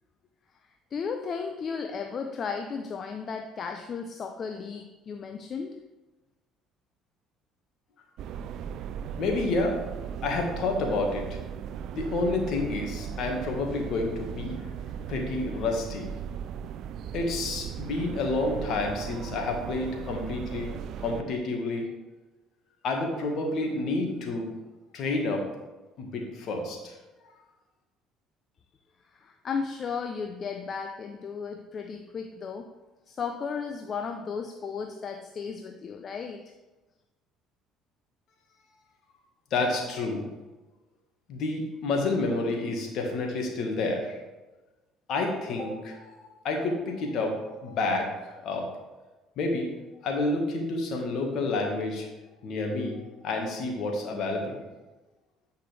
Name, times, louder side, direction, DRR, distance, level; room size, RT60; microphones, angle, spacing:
voice 1, 0.9-5.7 29.1-32.7 33.1-36.4, left 5 dB, 45° left, 5 dB, 0.6 m, -34 dB
sound 1, 8.2-21.2, right 8 dB, 65° right, 0.3 m, -37 dB
voice 2, 9.2-9.8 10.2-11.4 11.9-14.6 15.1-16.1 17.1-20.7 21.0-21.9 22.8-24.5 24.9-25.4 26.0-27.0 39.5-40.2 41.3-44.2 45.1-48.7 49.4-49.7 50.0-52.1 52.4-54.6, left 2 dB, 60° left, 2 dB, 1.6 m, -29 dB
8.6 x 5.5 x 3.4 m, 1.1 s
hypercardioid pair, 65°, 0 cm